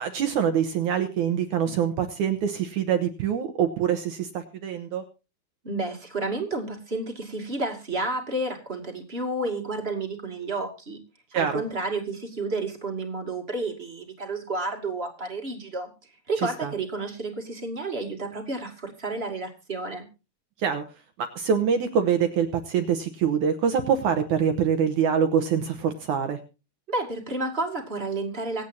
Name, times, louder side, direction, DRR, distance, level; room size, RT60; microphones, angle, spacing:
voice 1, 0.0-5.1 11.3-11.6 16.6-16.7 20.6-20.8 21.4-26.4, right 7 dB, 70° right, 7 dB, 2.0 m, -25 dB
voice 2, 5.6-11.0 11.3-15.9 16.3-20.0 26.9-28.7, right 2 dB, 20° right, 3 dB, 1.6 m, -31 dB
24.5 x 8.6 x 2.7 m, 0.31 s
omnidirectional pair, 4.6 m